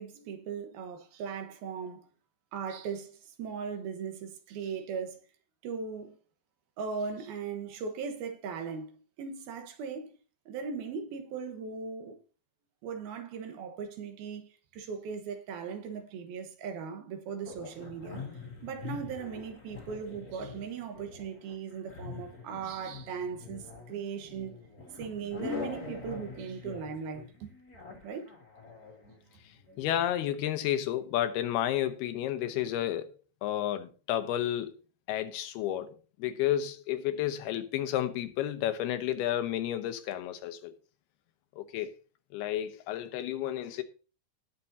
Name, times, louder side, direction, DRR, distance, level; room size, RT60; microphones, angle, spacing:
voice 1, 0.0-2.1 2.5-5.2 5.6-6.2 6.8-10.1 10.5-12.2 12.8-18.2 18.6-24.6 25.0-27.5 28.0-28.3, right 6 dB, 75° right, 3.1 m, -38 dB
sound 1, 17.4-30.1, left 4 dB, 30° left, 2.0 m, -44 dB
voice 2, 29.8-34.7 35.1-35.9 36.2-40.7 41.6-41.9 42.3-43.8, left 11 dB, 85° left, 2.9 m, -31 dB
18.5 x 6.7 x 2.7 m
omnidirectional pair, 4.4 m